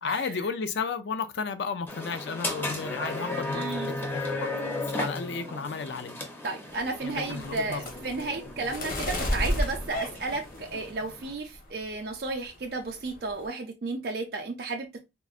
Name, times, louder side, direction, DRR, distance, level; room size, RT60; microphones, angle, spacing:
voice 1, 0.0-6.1 7.0-7.8, left 5 dB, 65° left, 0.4 m, -33 dB
sound 1, 1.9-11.3, left 1 dB, 10° left, 0.5 m, -36 dB
voice 2, 3.5-3.9 6.4-15.0, right 3 dB, 55° right, 0.5 m, -33 dB
sound 2, 6.7-11.1 11.5-12.0 12.3-12.6 12.8-13.5, left 1 dB, 50° left, 0.8 m, -33 dB
3.6 x 2.1 x 2.4 m
head